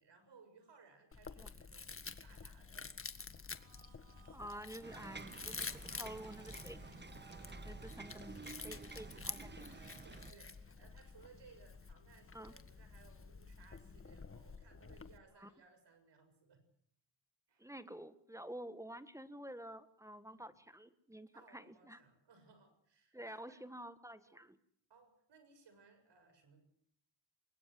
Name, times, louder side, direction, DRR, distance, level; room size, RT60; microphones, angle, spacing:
voice 1, 0.0-3.0 7.4-7.7 9.7-16.6 17.5-17.6 20.3-20.5 21.3-23.6 24.2-24.4 24.9-26.6, right 4 dB, 60° right, 8 dB, 7.1 m, -64 dB
Chewing mastication, 1.1-15.2, left 4 dB, 25° left, 1.7 m, -50 dB
sound 1, 3.4-10.8, right 6 dB, 80° right, 2.0 m, -65 dB
voice 2, 4.3-7.0 7.6-9.7 12.3-12.5 15.4-15.5 17.6-22.0 23.1-24.6, right 1 dB, 5° right, 13 dB, 1.6 m, -50 dB
sound 2, 4.8-10.3, right 3 dB, 20° right, 1.5 m, -51 dB
22.0 x 20.5 x 7.8 m, 0.68 s
cardioid pair, 85°, 47 cm